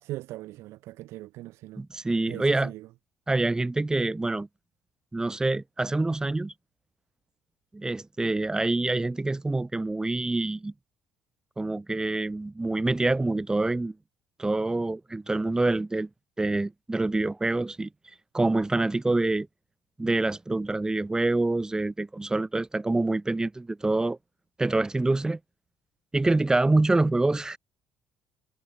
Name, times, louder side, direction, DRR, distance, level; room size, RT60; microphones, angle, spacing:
voice 1, 0.0-1.8 2.3-2.9, right 17 dB, 55° right, 2.2 m, -40 dB
voice 2, 1.8-2.7 3.3-4.5 5.1-6.5 7.7-10.7 11.6-13.9 14.4-16.1 16.4-17.9 18.3-19.5 20.0-24.2 24.6-25.4 26.1-27.6, right 2 dB, 15° right, 0.9 m, -26 dB
figure-of-eight pair, 55°, 5 cm